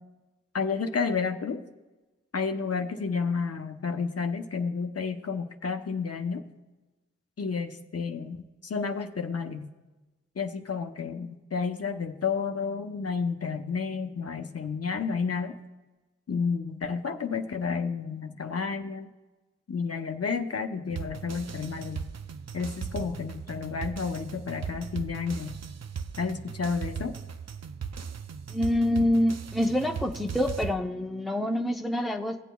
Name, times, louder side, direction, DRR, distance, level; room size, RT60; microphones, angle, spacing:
voice 1, 0.5-1.6 2.3-6.4 7.4-9.7 10.4-15.6 16.3-19.1 19.7-22.1 22.5-25.6 26.2-27.2, left 5 dB, 55° left, 5 dB, 0.8 m, -31 dB
sound 1, 20.9-30.8, right 6 dB, 60° right, 0.6 m, -38 dB
voice 2, 28.5-32.4, left 1 dB, ahead, 4 dB, 0.7 m, -26 dB
17.5 x 8.1 x 2.3 m, 1.1 s
cardioid pair, 55°, 30 cm